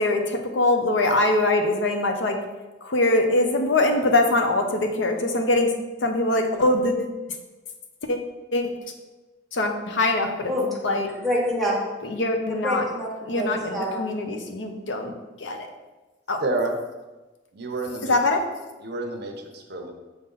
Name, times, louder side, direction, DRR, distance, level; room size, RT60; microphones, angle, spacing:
voice 1, 0.0-2.4 2.8-5.7 6.0-7.1 8.0-8.2 8.5-8.7 9.5-10.5 10.8-11.1 12.0-12.8 13.3-15.1 15.4-15.7 16.3-16.4 18.0-18.4, left 2 dB, 80° left, 4 dB, 0.7 m, -22 dB
voice 2, 10.4-11.8 12.4-14.0, equal, ahead, -4 dB, 1.3 m, -27 dB
voice 3, 16.4-16.7 17.5-18.2 18.8-19.9, right 2 dB, 60° right, 4 dB, 0.8 m, -29 dB
6.8 x 4.1 x 3.9 m, 1.2 s
head